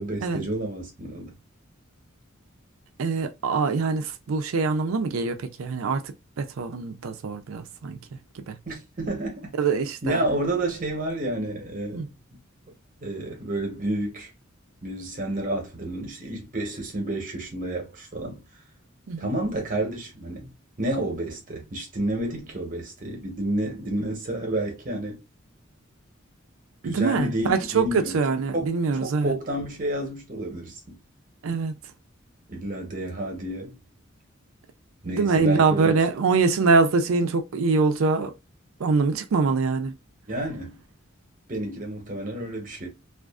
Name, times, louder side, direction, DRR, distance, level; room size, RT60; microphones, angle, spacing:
voice 1, 0.0-1.3 8.7-9.6 10.0-12.1 13.0-14.3 14.8-18.4 19.2-20.5 20.8-25.2 26.8-28.2 28.5-31.0 32.5-33.8 35.0-36.2 40.3-40.8 41.5-42.9, right 1 dB, 40° right, 0.9 m, -30 dB
voice 2, 3.0-8.0 8.4-8.6 9.6-10.2 11.9-12.1 19.1-19.3 26.8-29.4 31.4-31.7 35.0-38.3 38.8-39.9, right 4 dB, 80° right, 0.4 m, -24 dB
2.4 x 2.4 x 2.3 m
head